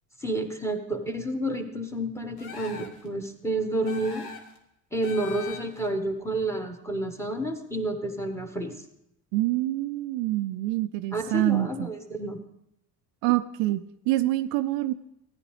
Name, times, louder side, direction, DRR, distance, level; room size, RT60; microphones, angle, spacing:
voice 1, 0.2-4.3 4.9-8.7 11.1-12.4, right 1 dB, 5° left, 7 dB, 1.3 m, -30 dB
sound 1, 2.4-3.1 3.9-4.6 5.0-5.9, left 5 dB, 50° left, 1.7 m, -41 dB
voice 2, 9.3-11.9 13.2-14.9, right 16 dB, 60° right, 11 dB, 0.5 m, -26 dB
14.5 x 9.9 x 3.3 m, 0.78 s
hypercardioid pair, 70°, 49 cm